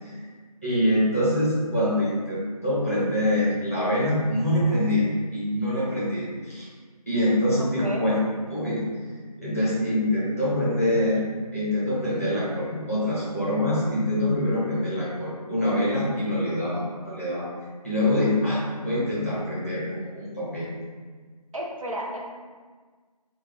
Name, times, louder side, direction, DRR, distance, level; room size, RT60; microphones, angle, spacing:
voice 1, 0.6-5.1 5.3-6.7 7.1-8.2 8.4-8.8 9.4-11.2 11.5-17.4 17.8-20.7, left 1 dB, 20° left, -9 dB, 0.8 m, -25 dB
voice 2, 7.6-8.1 18.5-18.6 21.5-22.3, equal, 55° right, -1 dB, 0.6 m, -33 dB
5.8 x 2.3 x 2.4 m, 1.5 s
figure-of-eight pair, 170°, 21 cm